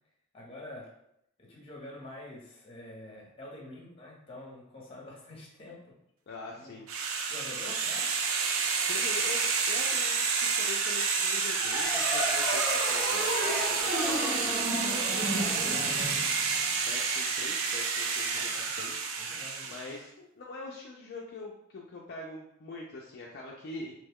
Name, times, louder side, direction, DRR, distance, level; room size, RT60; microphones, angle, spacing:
voice 1, 0.3-0.9 1.4-6.0 6.5-6.8 7.3-8.1 18.3-18.5 19.2-19.9, left 2 dB, 30° left, -3 dB, 0.9 m, -46 dB
voice 2, 6.3-6.9 8.9-14.6 15.5-16.2 16.9-19.1 19.7-23.9, left 2 dB, 55° left, -2 dB, 0.4 m, -43 dB
sound 1, 6.9-19.9, right 5 dB, 80° right, 0.4 m, -29 dB
sound 2, 11.6-16.8, equal, 5° right, 0.7 m, -33 dB
3.0 x 2.2 x 3.4 m, 0.76 s
head